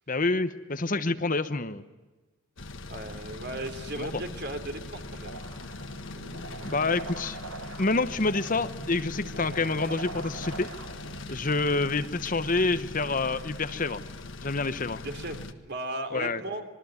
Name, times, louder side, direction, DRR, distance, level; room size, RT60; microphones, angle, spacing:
voice 1, 0.1-1.8 4.0-4.1 6.6-7.4 7.8-10.7 11.3-14.0 14.4-15.0 16.1-16.4, left 3 dB, 40° left, 11 dB, 1.0 m, -27 dB
sound 1, 2.6-15.5, left 2 dB, 55° left, 1.6 m, -41 dB
voice 2, 2.9-5.4 11.2-11.4 15.0-16.6, right 1 dB, 50° right, 6 dB, 3.4 m, -36 dB
sound 2, 5.2-11.2, right 2 dB, 75° right, 4.3 m, -43 dB
26.5 x 21.5 x 9.6 m, 1.2 s
head